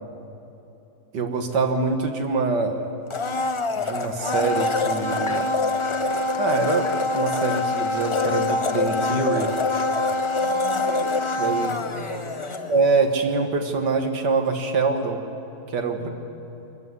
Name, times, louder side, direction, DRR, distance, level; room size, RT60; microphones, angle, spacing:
voice 1, 1.1-2.9 3.8-5.5 6.4-6.9 7.1-9.5 11.4-11.7 12.7-15.2 15.7-16.0, right 4 dB, 80° right, 5 dB, 2.1 m, -24 dB
Domestic sounds home sounds, 3.1-13.0 13.3-13.4, left 3 dB, 50° left, 0.3 m, -25 dB
voice 2, 10.4-11.2 11.5-12.7 16.0-16.1, equal, 35° left, -3 dB, 4.3 m, -38 dB
24.5 x 14.0 x 9.6 m, 2.9 s
omnidirectional pair, 1.8 m